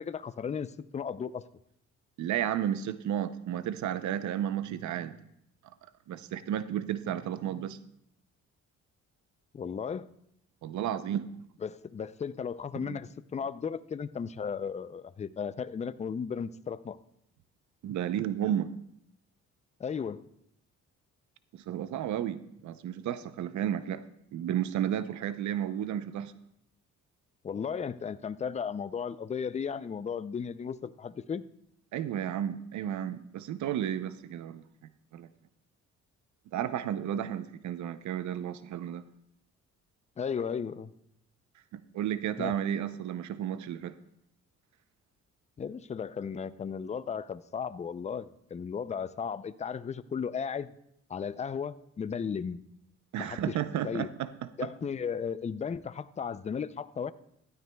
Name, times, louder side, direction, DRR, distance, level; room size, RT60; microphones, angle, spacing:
voice 1, 0.0-1.4 9.5-10.1 11.6-17.0 19.8-20.2 27.4-31.4 40.2-40.9 42.4-42.6 45.6-50.7 51.1-52.6 53.2-53.5 53.8-54.1 54.6-57.1, left 6 dB, 25° left, 14 dB, 0.4 m, -35 dB
voice 2, 2.2-5.2 6.1-7.8 10.6-11.3 12.8-13.0 17.8-18.7 21.5-24.0 24.3-26.3 31.9-34.6 35.1-35.3 36.5-39.0 41.7-44.0 53.1-54.7, right 10 dB, 70° right, 13 dB, 0.6 m, -32 dB
15.5 x 12.0 x 2.3 m, 0.74 s
cardioid pair, 90°, 30 cm